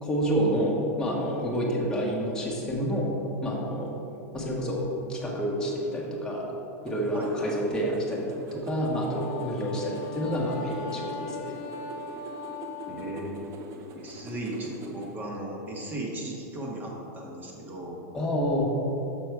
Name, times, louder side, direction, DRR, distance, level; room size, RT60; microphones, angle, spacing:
voice 1, 0.0-3.1 3.4-3.9 4.3-6.5 6.8-8.2 8.5-11.5 18.1-18.7, equal, 10° left, -4 dB, 1.3 m, -28 dB
sound 1, 6.9-15.1, right 1 dB, 40° right, 0.9 m, -43 dB
Wind instrument woodwind instrument, 9.1-13.3, left 3 dB, 55° left, 0.6 m, -39 dB
voice 2, 12.9-13.4 14.0-18.0, right 1 dB, 20° right, -2 dB, 1.3 m, -36 dB
6.1 x 6.0 x 4.7 m, 2.9 s
supercardioid pair, 130°, 9 cm